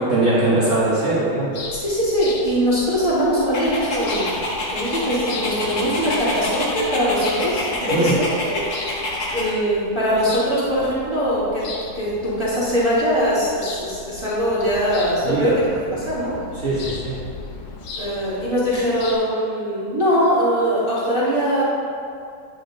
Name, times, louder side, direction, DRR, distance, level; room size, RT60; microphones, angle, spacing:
voice 1, 0.1-1.5 7.9-8.1 15.2-15.5 16.6-17.2, right 2 dB, 50° right, -8 dB, 1.2 m, -20 dB
sound 1, 1.5-19.2, left 3 dB, 85° left, 1.5 m, -37 dB
voice 2, 1.7-8.2 8.5-9.0 9.3-11.7 11.9-16.3 18.0-21.6, equal, 15° right, -10 dB, 1.3 m, -21 dB
Dog, 3.5-9.5, left 2 dB, 50° left, 1.1 m, -27 dB
9.3 x 4.8 x 2.6 m, 2.4 s
omnidirectional pair, 2.0 m